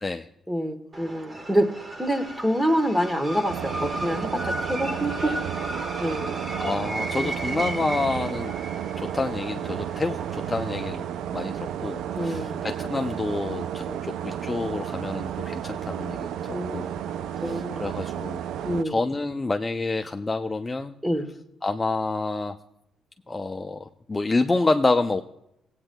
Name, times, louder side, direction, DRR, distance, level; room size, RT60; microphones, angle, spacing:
voice 1, 0.5-1.7 2.0-5.4 6.0-6.4 7.2-7.3 12.1-12.6 13.9-14.0 16.5-17.9 18.6-19.0 21.0-21.3, equal, 10° right, 8 dB, 1.1 m, -27 dB
sound 1, 0.9-10.9, right 1 dB, 30° right, 1.1 m, -35 dB
sound 2, 3.5-18.8, right 9 dB, 80° right, 0.3 m, -32 dB
Bird vocalization bird call bird song, 4.6-11.0, right 1 dB, 60° right, 3.7 m, -48 dB
voice 2, 6.6-8.5 9.0-11.0 11.3-16.9 17.4-18.4 18.8-20.9 21.6-22.5 23.3-25.2, left 3 dB, 20° left, 5 dB, 0.4 m, -28 dB
17.5 x 8.8 x 2.2 m, 0.80 s
cardioid pair, 90°, 0 cm